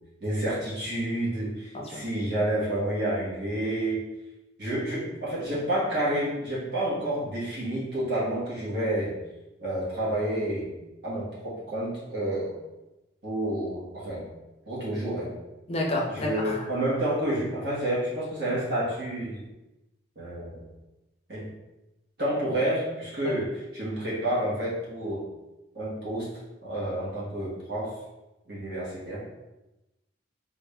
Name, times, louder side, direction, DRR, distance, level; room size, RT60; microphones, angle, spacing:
voice 1, 0.2-4.0 4.6-9.1 9.6-10.7 11.0-12.5 13.2-14.2 14.6-15.3 16.1-19.4 20.1-20.6 21.3-21.5 22.2-25.2 25.7-26.3 26.6-27.9 28.5-29.2, right 1 dB, 60° right, -8 dB, 1.5 m, -29 dB
voice 2, 15.7-16.7, left 1 dB, 35° left, -1 dB, 0.6 m, -30 dB
3.7 x 2.5 x 3.4 m, 1.0 s
head